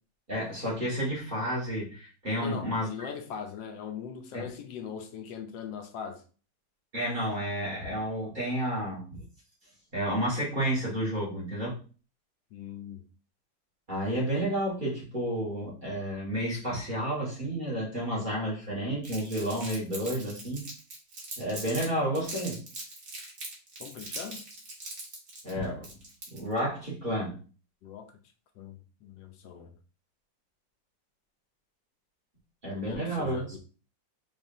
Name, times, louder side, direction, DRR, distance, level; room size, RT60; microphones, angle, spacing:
voice 1, 0.3-3.1 4.3-4.5 6.9-9.2 9.9-11.8 13.9-20.7 21.4-22.6 25.4-26.0 26.3-27.4 32.6-33.5, equal, 30° right, 1.6 m, -31 dB
voice 2, 2.4-6.2 12.5-13.0 23.8-24.4 27.8-28.1 28.6-29.7 32.7-33.6, left 7 dB, 80° left, 1.3 m, -40 dB
Crumpling crinkling, 19.0-21.9 22.1-26.6, right 2 dB, 50° right, 1.5 m, -41 dB
4.0 x 3.4 x 2.6 m
omnidirectional pair, 2.0 m